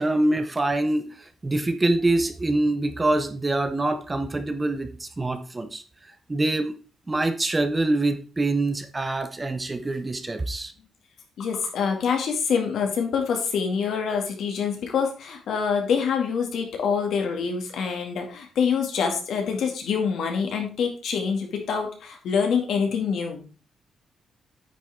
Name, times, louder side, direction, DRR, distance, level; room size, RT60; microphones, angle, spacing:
voice 1, 0.0-5.8 6.3-6.8 7.1-10.7, right 2 dB, 15° right, 10 dB, 0.6 m, -25 dB
voice 2, 11.4-23.4, left 6 dB, 65° left, 3 dB, 2.2 m, -26 dB
9.2 x 6.5 x 3.6 m, 0.35 s
wide cardioid pair, 175°, 0 cm